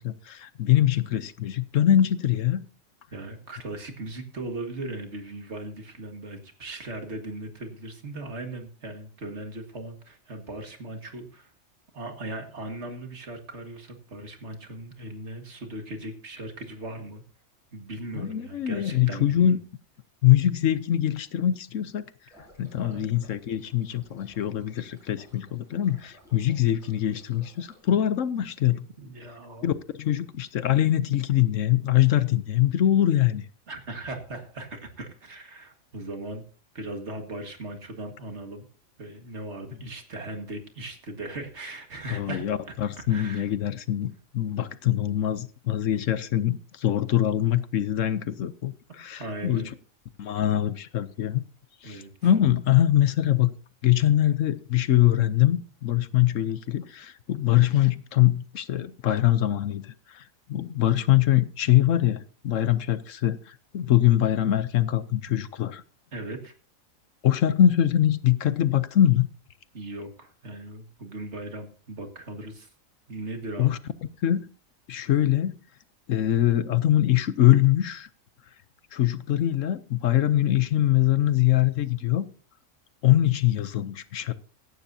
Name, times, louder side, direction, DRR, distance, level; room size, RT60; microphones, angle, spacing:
voice 1, 0.0-2.6 18.1-19.6 20.2-22.0 22.6-28.9 29.6-33.4 42.1-49.6 50.2-51.4 51.8-53.5 53.8-59.8 60.1-60.2 60.5-65.8 67.2-69.3 73.6-73.8 74.2-74.5 74.9-75.6 76.1-78.1 78.9-82.3 83.0-84.3, left 12 dB, 75° left, 1.1 m, -23 dB
voice 2, 3.1-11.5 11.9-17.2 17.7-19.6 22.8-23.1 28.7-29.7 33.7-36.4 36.7-38.7 39.0-42.4 43.1-43.5 49.2-49.7 51.8-52.3 65.3-65.4 66.1-66.5 69.7-72.7 73.1-73.8, right 2 dB, 55° right, 2.1 m, -38 dB
sound 1, 22.3-27.8, left 1 dB, ahead, 7.9 m, -56 dB
16.5 x 11.5 x 2.7 m
omnidirectional pair, 1.4 m